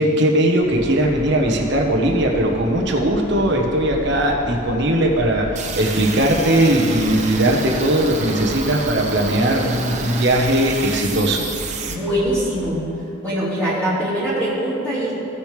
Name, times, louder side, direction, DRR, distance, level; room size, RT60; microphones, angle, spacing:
voice 1, 0.0-11.5, right 1 dB, 60° right, 1 dB, 1.2 m, -19 dB
sound 1, 0.6-12.7, equal, 15° right, 2.4 m, -35 dB
sound 2, 5.6-11.9, right 4 dB, 35° right, 0.8 m, -30 dB
voice 2, 11.9-12.8 13.2-15.1, right 1 dB, 10° left, -12 dB, 2.5 m, -22 dB
16.5 x 6.6 x 3.4 m, 2.9 s
head